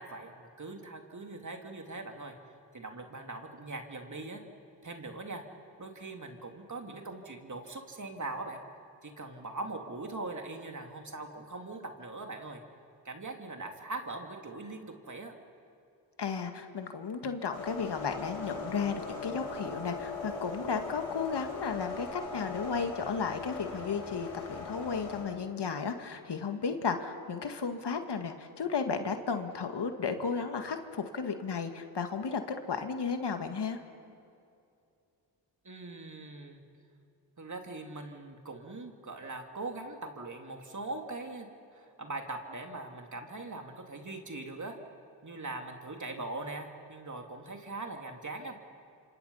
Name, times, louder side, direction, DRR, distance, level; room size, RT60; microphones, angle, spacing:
voice 1, 0.0-2.3 2.7-4.4 4.8-5.4 5.8-8.6 9.0-12.6 13.0-15.3 35.6-36.6 37.4-41.5 41.7-44.8 45.2-48.6, right 2 dB, 40° right, 3 dB, 3.1 m, -41 dB
voice 2, 16.2-33.8, left 5 dB, 60° left, 6 dB, 2.0 m, -34 dB
sound 1, 17.5-25.2, left 4 dB, 80° left, 6.8 m, -40 dB
27.5 x 26.5 x 5.7 m, 2.6 s
supercardioid pair, 45°, 45 cm